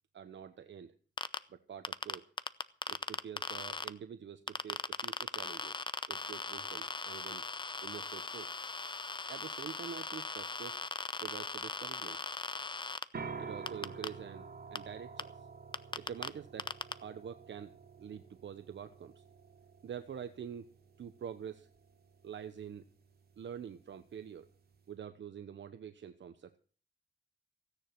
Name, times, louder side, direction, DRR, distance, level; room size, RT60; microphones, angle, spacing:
voice 1, 0.1-0.9 1.5-2.3 2.9-5.8 6.1-7.4 7.8-8.5 9.3-10.8 11.2-12.2 13.4-15.5 16.0-19.2 19.8-20.7 21.0-21.7 22.2-22.9 23.4-24.5 24.9-26.6, right 8 dB, 70° right, 9 dB, 1.0 m, -46 dB
sound 1, 1.2-1.4 1.8-3.9 4.5-13.0 13.7-14.1 14.8-14.9 15.2-15.3 15.7-16.3 16.6-16.9, left 3 dB, 25° left, 0.8 m, -38 dB
sound 2, 13.1-24.9, right 5 dB, 55° right, 2.7 m, -50 dB
16.5 x 10.0 x 6.1 m, 0.41 s
wide cardioid pair, 120°, 20 cm